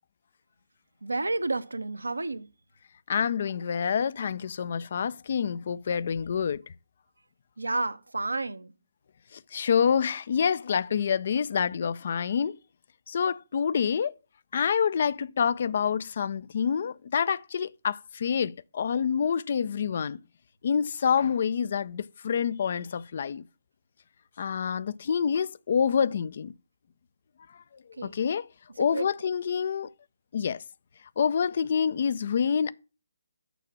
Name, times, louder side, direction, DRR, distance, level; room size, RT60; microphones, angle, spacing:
voice 1, 1.0-2.5 7.6-8.7 28.0-28.1 28.8-29.1, right 2 dB, 75° right, 0.7 m, -31 dB
voice 2, 3.1-6.6 9.5-12.6 13.1-14.1 14.5-20.2 20.6-23.4 24.4-26.5 28.0-28.5 28.8-29.9 30.3-30.6 31.2-32.7, left 7 dB, 45° left, 0.4 m, -27 dB
7.0 x 5.8 x 7.2 m
figure-of-eight pair, 140°, 0 cm